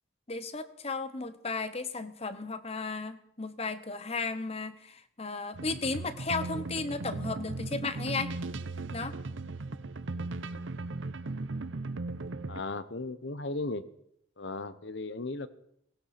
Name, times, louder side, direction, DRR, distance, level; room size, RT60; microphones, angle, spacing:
voice 1, 0.3-8.3 8.9-9.2, left 3 dB, 30° left, 12 dB, 1.0 m, -35 dB
sound 1, 5.5-12.6, right 3 dB, 80° right, 0.8 m, -37 dB
voice 2, 12.5-13.8 14.4-15.5, left 2 dB, 65° left, 13 dB, 1.0 m, -36 dB
19.5 x 17.5 x 4.2 m, 0.71 s
head